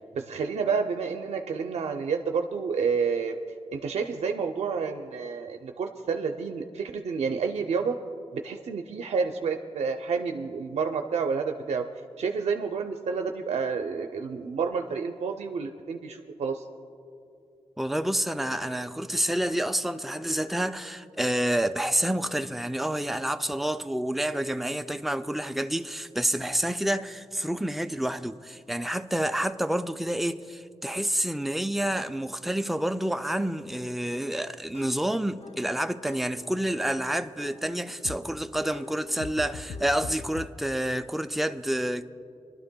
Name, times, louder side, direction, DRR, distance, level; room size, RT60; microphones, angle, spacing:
voice 1, 0.1-3.4 3.7-8.0 8.3-11.8 12.2-16.6, right 5 dB, 80° right, 0.5 m, -29 dB
voice 2, 17.8-42.1, right 1 dB, ahead, 0.3 m, -28 dB
sound 1, 34.1-40.5, left 4 dB, 80° left, 0.5 m, -44 dB
24.5 x 12.0 x 2.2 m
wide cardioid pair, 115°, 11 cm